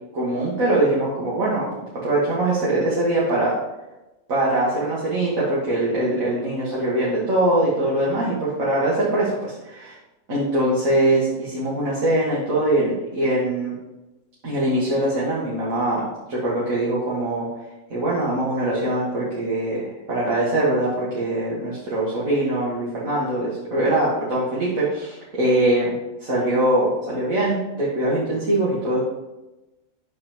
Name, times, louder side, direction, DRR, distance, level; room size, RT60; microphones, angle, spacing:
voice 1, 0.1-1.7 2.0-3.5 4.3-9.9 10.3-13.7 14.4-17.5 17.9-25.9 26.2-29.0, right 1 dB, 70° right, -7 dB, 2.2 m, -22 dB
8.7 x 7.0 x 3.1 m, 1.0 s
omnidirectional pair, 1.5 m